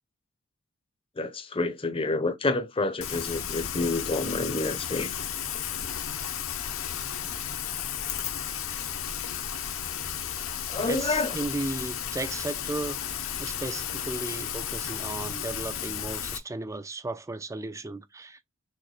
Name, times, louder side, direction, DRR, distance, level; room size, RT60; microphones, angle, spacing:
voice 1, 1.2-5.1 10.7-11.3, left 3 dB, 25° left, 0.6 m, -28 dB
Rain, 3.0-16.4, left 9 dB, 65° left, 0.6 m, -33 dB
voice 2, 10.8-13.0 13.4-18.4, right 2 dB, 15° right, 0.4 m, -35 dB
6.3 x 2.2 x 3.1 m
head